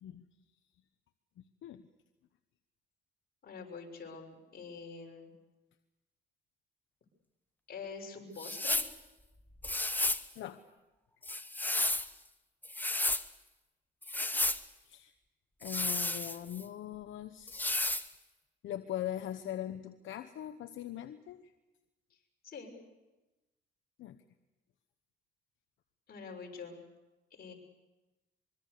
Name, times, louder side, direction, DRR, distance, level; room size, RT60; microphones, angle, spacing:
voice 1, 3.4-5.3 7.7-8.9 22.4-22.7 26.1-26.8 27.3-27.5, left 5 dB, 50° left, 1 dB, 6.5 m, -46 dB
sound 1, 8.4-8.9 9.6-10.3 11.2-12.1 12.6-13.2 14.0-14.6 15.6-16.6 17.5-18.1, left 2 dB, 10° left, 1.0 m, -32 dB
voice 2, 15.6-17.9 18.6-21.5 24.0-24.2, left 11 dB, 75° left, 8 dB, 1.1 m, -41 dB
24.5 x 23.5 x 6.8 m, 1.1 s
cardioid pair, 90°, 20 cm